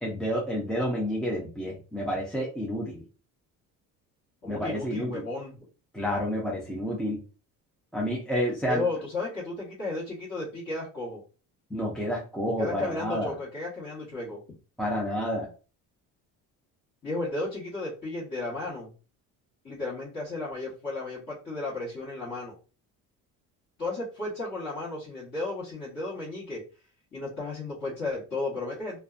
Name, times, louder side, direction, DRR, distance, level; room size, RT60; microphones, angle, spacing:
voice 1, 0.0-3.0 4.5-5.2 5.9-7.2 7.9-8.9 11.7-13.3 14.8-15.5, equal, ahead, -4 dB, 0.4 m, -29 dB
voice 2, 4.4-5.5 8.7-11.2 12.6-14.4 17.0-18.9 19.6-22.6 23.8-26.6 27.1-29.0, left 2 dB, 30° left, -10 dB, 1.1 m, -34 dB
2.5 x 2.2 x 2.4 m, 0.34 s
cardioid pair, 150°, 33 cm